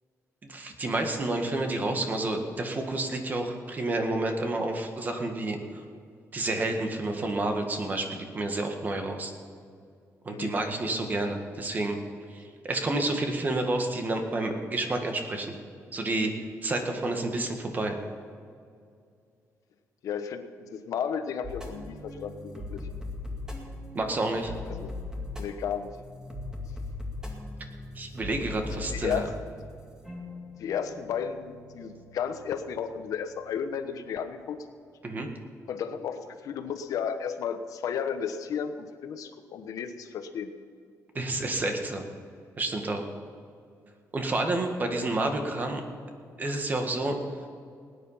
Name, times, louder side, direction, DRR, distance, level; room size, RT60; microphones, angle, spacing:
voice 1, 0.4-5.8 6.3-9.3 10.2-12.0 12.3-15.6 15.9-16.3 16.6-18.0 23.9-24.5 27.9-29.3 35.0-35.3 41.1-42.0 42.6-43.0 44.1-45.8 46.4-47.2, right 2 dB, 30° right, 4 dB, 1.8 m, -29 dB
voice 2, 20.0-22.8 24.7-25.0 25.4-25.9 28.9-29.3 30.6-34.6 35.7-40.5, left 7 dB, 75° left, 8 dB, 1.2 m, -33 dB
sound 1, 21.4-34.0, left 2 dB, 10° right, 2.2 m, -40 dB
18.5 x 10.0 x 5.7 m, 2.3 s
cardioid pair, 140°, 6 cm